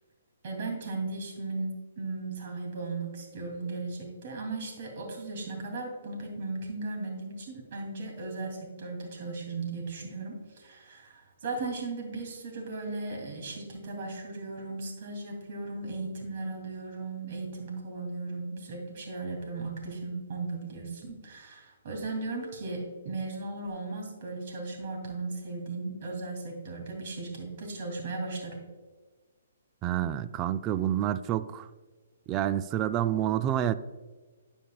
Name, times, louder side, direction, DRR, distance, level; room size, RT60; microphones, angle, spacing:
voice 1, 0.4-28.6, right 3 dB, 50° right, 2.6 m, -36 dB
voice 2, 29.8-31.7 32.3-33.7, right 11 dB, 25° right, 0.3 m, -28 dB
15.0 x 5.3 x 2.3 m
hypercardioid pair, 145°, 0 cm